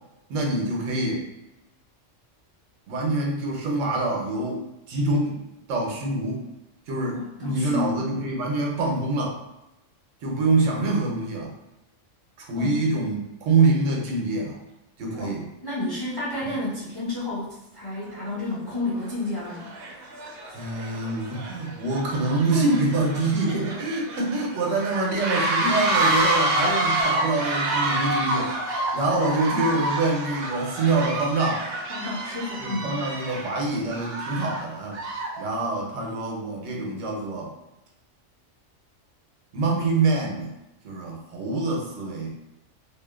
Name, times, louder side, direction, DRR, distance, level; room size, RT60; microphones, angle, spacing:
voice 1, 0.3-1.2 2.9-5.4 5.7-6.5 6.9-9.4 10.2-11.5 12.4-14.6 15.0-15.5 20.5-31.7 32.6-35.0 35.4-37.5 39.5-40.5 40.8-42.3, right 2 dB, 85° right, -1 dB, 1.0 m, -25 dB
voice 2, 7.1-8.3 12.5-12.8 15.1-19.8 31.9-32.9, left 2 dB, 30° left, -8 dB, 0.4 m, -31 dB
sound 1, 18.1-18.2 18.9-19.1 19.5-35.4, right 2 dB, 65° right, 0.7 m, -28 dB
2.7 x 2.1 x 2.3 m, 0.93 s
omnidirectional pair, 1.3 m